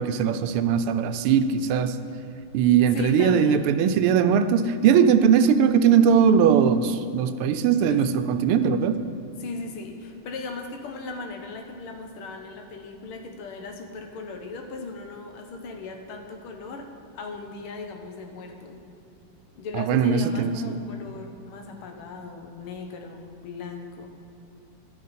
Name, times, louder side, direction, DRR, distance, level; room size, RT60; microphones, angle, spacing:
voice 1, 0.0-1.9 2.5-9.0 19.7-20.7, right 7 dB, 85° right, 10 dB, 1.5 m, -20 dB
voice 2, 2.9-3.7 7.8-8.0 9.4-18.8 19.6-24.1, left 3 dB, 80° left, 4 dB, 1.8 m, -38 dB
11.5 x 8.9 x 4.2 m, 2.7 s
omnidirectional pair, 2.4 m